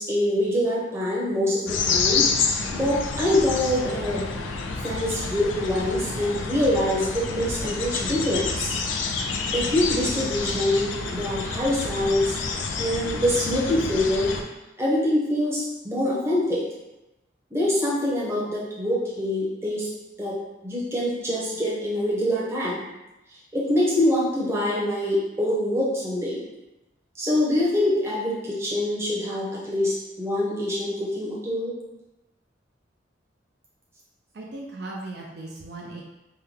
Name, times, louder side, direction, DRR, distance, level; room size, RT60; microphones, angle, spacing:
voice 1, 0.0-4.2 4.8-8.7 9.5-12.4 12.8-14.3 14.8-16.6 17.5-19.9 20.2-20.4 20.6-22.8 23.5-26.4 27.2-31.7, left 1 dB, 15° right, -7 dB, 0.8 m, -25 dB
sound 1, 1.7-14.4, left 4 dB, 85° left, 0.4 m, -28 dB
voice 2, 34.3-36.0, right 2 dB, 60° right, -2 dB, 0.4 m, -37 dB
3.6 x 2.2 x 3.2 m, 0.98 s
head